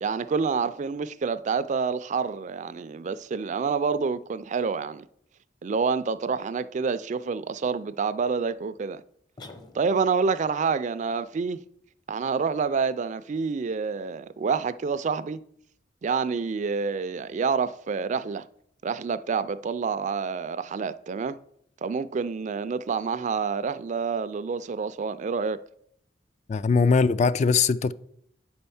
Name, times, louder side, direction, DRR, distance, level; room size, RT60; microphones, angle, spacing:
voice 1, 0.0-5.1 5.6-9.0 9.7-11.6 12.1-15.4 16.0-18.4 18.8-21.4 21.8-25.6, right 5 dB, 40° right, 0.4 m, -28 dB
sound 1, 9.4-10.3, left 2 dB, 25° left, 0.7 m, -46 dB
voice 2, 26.5-27.9, left 4 dB, 40° left, 0.3 m, -21 dB
8.8 x 4.4 x 7.0 m
head